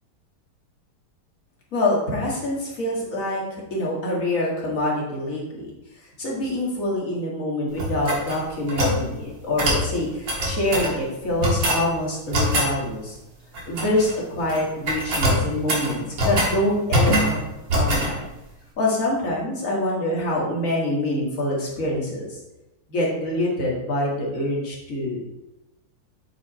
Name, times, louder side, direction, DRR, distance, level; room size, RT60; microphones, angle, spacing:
voice 1, 1.7-5.7 6.2-13.2 13.7-17.4 17.7-18.3 18.8-22.4 22.9-25.3, left 1 dB, 40° left, -3 dB, 2.1 m, -25 dB
sound 1, 7.8-9.0 9.6-9.9 10.3-10.9 11.4-11.8 12.3-12.7 13.5-14.1 14.4-14.6 14.9-16.5 16.9-17.4 17.7-18.1, equal, 60° right, 2.3 m, -22 dB
7.3 x 5.4 x 4.2 m, 0.98 s
omnidirectional pair, 2.3 m